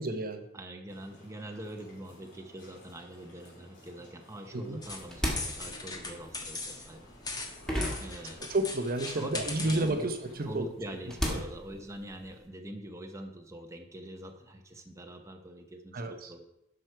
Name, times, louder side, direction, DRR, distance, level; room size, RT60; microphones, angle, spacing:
voice 1, 0.0-0.4 4.5-4.8 8.5-10.6 11.3-11.4 15.9-16.3, right 2 dB, 50° right, 6 dB, 0.9 m, -31 dB
voice 2, 0.5-7.1 8.0-8.4 9.1-10.1 10.4-16.4, right 1 dB, 15° right, 3 dB, 0.9 m, -44 dB
sound 1, 0.9-10.6, left 1 dB, 65° left, 3.2 m, -55 dB
sound 2, 4.8-10.0, left 3 dB, 20° left, 1.1 m, -40 dB
sound 3, 4.8-8.9 9.2-12.4, equal, 5° left, 1.9 m, -36 dB
10.5 x 6.3 x 4.5 m, 0.83 s
head